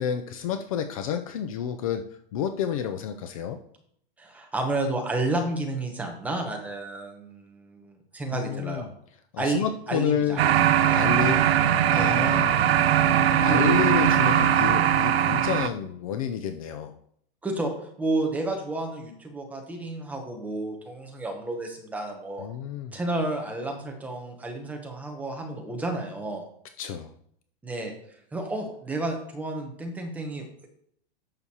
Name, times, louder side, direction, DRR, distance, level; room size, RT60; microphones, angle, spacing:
voice 1, 0.0-3.6 8.3-8.9 9.3-10.4 10.9-11.5 11.9-12.6 13.4-16.9 22.4-22.9 26.8-27.1, left 8 dB, 35° left, 8 dB, 0.5 m, -29 dB
voice 2, 4.2-8.9 9.4-10.5 10.8-11.0 11.9-12.2 13.4-13.8 17.4-17.7 18.0-22.5 22.9-26.4 27.6-27.9 28.3-30.7, right 2 dB, 5° right, 2 dB, 0.8 m, -31 dB
sound 1, 10.4-15.7, right 10 dB, 80° right, 0.7 m, -20 dB
10.5 x 7.0 x 2.8 m, 0.68 s
supercardioid pair, 165°, 30 cm